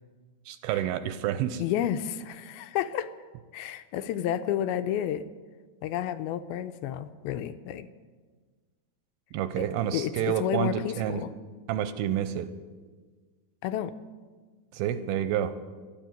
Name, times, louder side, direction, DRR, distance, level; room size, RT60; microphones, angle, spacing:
voice 1, 0.5-1.6 9.3-11.2 11.7-12.5 14.7-15.5, right 10 dB, 80° right, 11 dB, 2.4 m, -29 dB
voice 2, 1.6-3.1 3.5-5.3 5.8-7.9 9.6-9.7 9.9-11.3 13.6-13.9, left 10 dB, 80° left, 10 dB, 2.3 m, -31 dB
13.0 x 10.5 x 9.2 m, 1.4 s
omnidirectional pair, 4.5 m